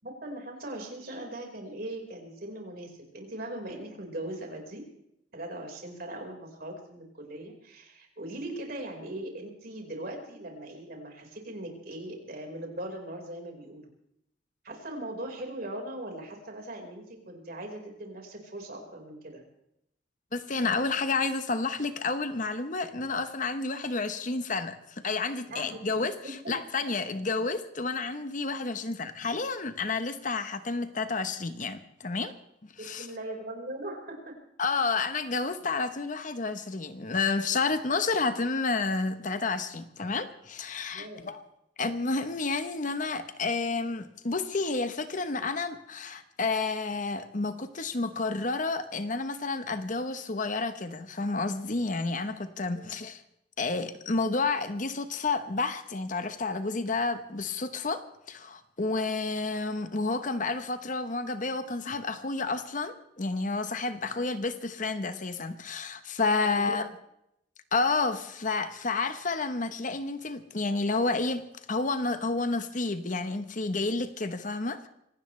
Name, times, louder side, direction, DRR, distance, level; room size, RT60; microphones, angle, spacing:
voice 1, 0.0-4.8 5.3-13.9 14.6-19.4 25.5-25.8 26.2-26.5 33.0-34.2 40.9-41.3 52.7-52.9 66.4-66.8, right 1 dB, 55° right, 4.7 m, -40 dB
voice 2, 20.3-32.3 32.8-33.1 34.6-41.4 41.8-53.2 53.6-66.9 67.7-74.9, left 3 dB, 45° left, 1.0 m, -30 dB
25.5 x 17.5 x 3.3 m
head